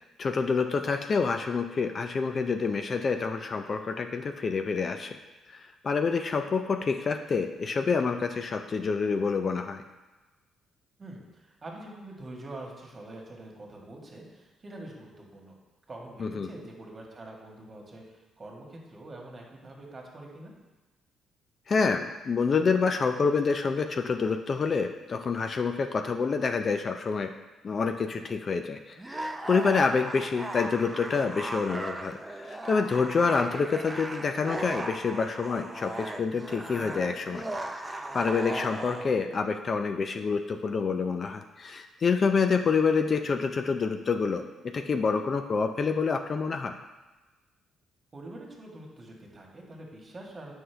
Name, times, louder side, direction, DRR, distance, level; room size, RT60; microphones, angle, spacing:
voice 1, 0.2-5.2 5.5-9.8 16.2-16.5 21.7-27.3 27.6-37.4 37.7-46.7, left 5 dB, 45° left, 6 dB, 0.4 m, -27 dB
voice 2, 11.0-15.5 15.9-20.5 48.1-50.5, right 1 dB, 35° right, -1 dB, 1.6 m, -45 dB
sound 1, 29.0-39.1, right 2 dB, 15° right, 0.5 m, -37 dB
7.6 x 5.5 x 3.4 m, 1.2 s
cardioid pair, 90°, 0 cm